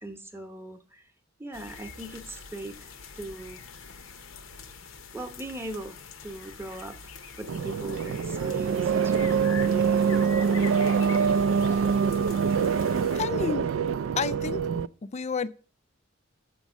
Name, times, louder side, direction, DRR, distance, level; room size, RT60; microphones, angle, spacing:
voice 1, 0.0-1.0 1.4-3.6 5.1-7.1 7.4-10.3 10.6-10.7, right 1 dB, 10° right, 0.8 m, -40 dB
sound 1, 1.5-13.2, left 5 dB, 70° left, 0.8 m, -44 dB
sound 2, 7.5-14.9, right 6 dB, 75° right, 0.3 m, -25 dB
voice 2, 12.8-13.7 14.2-14.7 15.0-15.5, left 5 dB, 35° left, 0.4 m, -31 dB
7.2 x 5.3 x 6.0 m
head